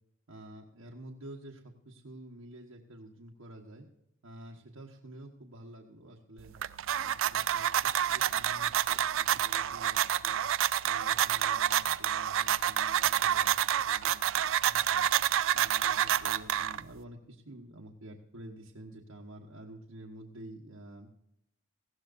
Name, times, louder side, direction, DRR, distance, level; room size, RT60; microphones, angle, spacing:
voice 1, 0.3-3.9 4.2-6.5 7.0-15.1 15.5-21.2, right 1 dB, 90° right, 0 dB, 1.3 m, -49 dB
sound 1, 6.4-17.0, right 10 dB, 70° right, 0.4 m, -28 dB
19.0 x 15.0 x 2.6 m, 0.82 s
head